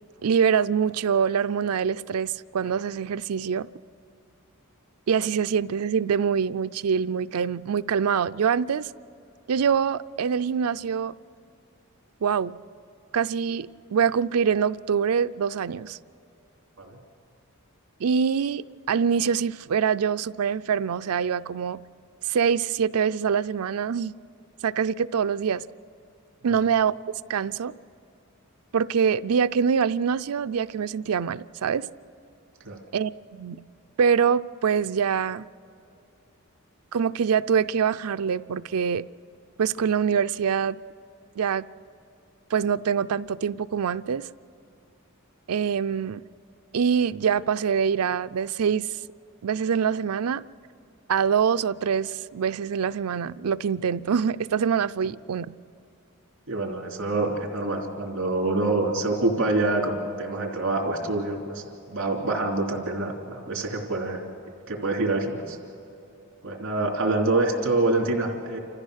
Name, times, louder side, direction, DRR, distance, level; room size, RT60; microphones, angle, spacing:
voice 1, 0.2-3.7 5.1-8.9 9.5-11.1 12.2-12.5 13.1-16.0 18.0-21.8 22.3-24.1 24.6-25.6 26.4-26.9 27.3-27.7 28.7-31.9 32.9-33.6 34.0-35.4 36.9-39.0 39.6-40.8 41.4-41.7 42.5-44.3 45.5-46.2 46.7-48.9 49.4-50.4 51.1-55.5, right 7 dB, 80° right, 0.4 m, -24 dB
voice 2, 56.5-64.2 64.7-65.6 66.4-68.6, right 2 dB, 60° right, 3.2 m, -26 dB
28.5 x 14.5 x 6.5 m
head